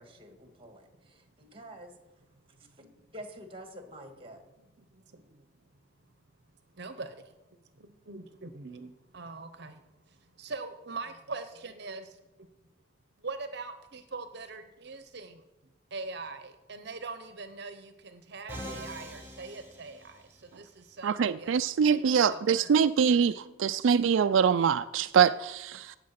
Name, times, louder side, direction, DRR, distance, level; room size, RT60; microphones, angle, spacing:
voice 1, 0.0-1.9 2.8-2.9 3.1-4.4, right 1 dB, 30° right, 6 dB, 1.8 m, -47 dB
voice 2, 2.4-2.9 4.6-5.4 6.7-12.5 13.2-15.4 15.9-22.8 23.1-23.6, right 3 dB, 60° right, 9 dB, 0.9 m, -43 dB
Musical instrument, 18.5-20.6, equal, 10° right, 4.3 m, -43 dB
voice 3, 21.0-26.0, right 7 dB, 85° right, 12 dB, 0.4 m, -24 dB
17.0 x 7.4 x 5.8 m, 1.0 s
head